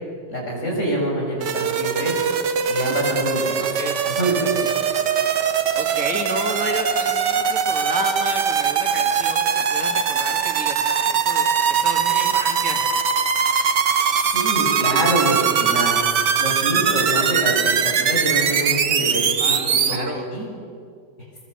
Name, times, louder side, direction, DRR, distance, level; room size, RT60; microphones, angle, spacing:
voice 1, 0.3-2.1 2.7-3.7 4.2-4.6 14.2-20.5, right 1 dB, 40° left, -2 dB, 7.6 m, -25 dB
sound 1, 1.4-20.0, right 7 dB, 75° right, 1.9 m, -21 dB
voice 2, 3.6-4.0 5.7-12.8 19.4-20.3, right 1 dB, 50° right, 2 dB, 2.9 m, -31 dB
24.0 x 23.0 x 8.0 m, 2.2 s
omnidirectional pair, 1.9 m